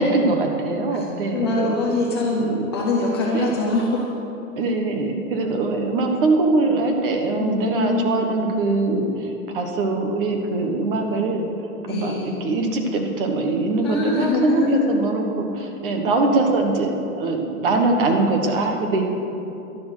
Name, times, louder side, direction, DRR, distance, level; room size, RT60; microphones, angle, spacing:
voice 1, 0.0-1.5 2.4-2.5 3.3-3.5 4.6-19.0, right 3 dB, 40° right, 3 dB, 1.3 m, -22 dB
voice 2, 1.3-4.1 7.4-8.4 11.9-12.4 13.8-14.9, left 2 dB, 20° left, -2 dB, 0.6 m, -23 dB
11.5 x 11.0 x 6.3 m, 2.9 s
supercardioid pair, 175°, 44 cm